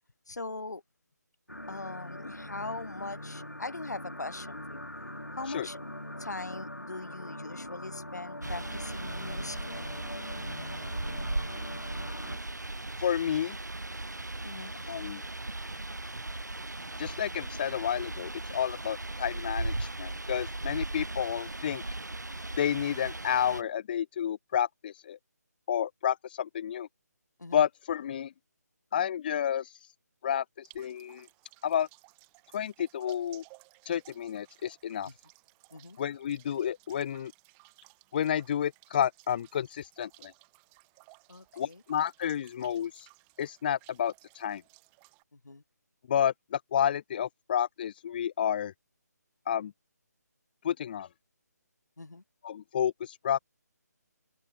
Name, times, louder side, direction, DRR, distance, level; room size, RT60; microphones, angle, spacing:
voice 1, 0.3-0.8 1.7-4.9 5.3-5.8 6.2-9.9 14.4-14.7 20.1-20.2 27.4-27.6 35.1-35.2 35.7-36.0 41.3-41.8 45.3-45.6 52.0-52.2, left 3 dB, 70° left, 4.0 m, -41 dB
sound 1, 1.5-12.4, left 1 dB, 90° left, 4.8 m, -42 dB
sound 2, 8.4-23.6, right 2 dB, 80° right, 6.1 m, -37 dB
voice 2, 13.0-13.6 14.9-15.2 17.0-21.8 22.6-25.2 25.7-26.9 27.5-28.3 28.9-29.9 30.2-31.3 31.6-31.9 32.5-33.4 33.8-35.1 36.0-37.3 38.1-40.3 41.5-43.1 43.4-44.6 46.1-48.7 49.5-49.7 50.6-51.1 52.4-53.4, left 9 dB, 30° left, 1.0 m, -30 dB
sound 3, 30.6-45.2, right 37 dB, 15° right, 7.2 m, -59 dB
figure-of-eight pair, 150°, 9 cm